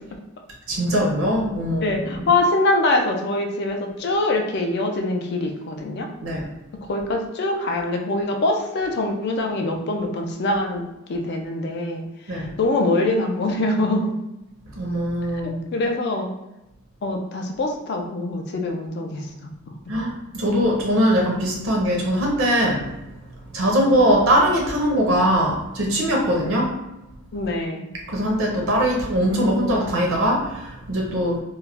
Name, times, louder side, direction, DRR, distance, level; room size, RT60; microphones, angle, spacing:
voice 1, 0.7-2.3 6.2-6.4 12.3-12.5 14.8-15.6 19.9-22.8 23.5-26.7 28.1-31.4, equal, 70° right, -1 dB, 0.5 m, -21 dB
voice 2, 1.8-6.1 6.9-10.8 11.1-14.1 15.4-16.3 17.0-19.7 26.5-26.6 27.3-27.9, left 2 dB, 50° left, 3 dB, 0.3 m, -24 dB
2.3 x 2.0 x 3.2 m, 0.95 s
head